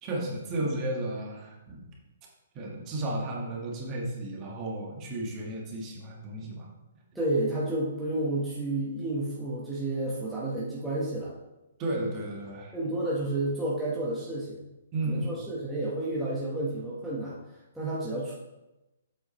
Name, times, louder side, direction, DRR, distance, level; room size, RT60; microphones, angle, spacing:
voice 1, 0.0-1.9 2.5-6.7 11.8-12.7 14.9-15.4, right 1 dB, 20° right, -2 dB, 1.4 m, -33 dB
voice 2, 7.1-11.3 12.7-14.6 15.0-17.4 17.7-18.3, right 1 dB, 5° right, -9 dB, 1.1 m, -30 dB
7.8 x 4.8 x 4.2 m, 0.96 s
hypercardioid pair, 170°, 0 cm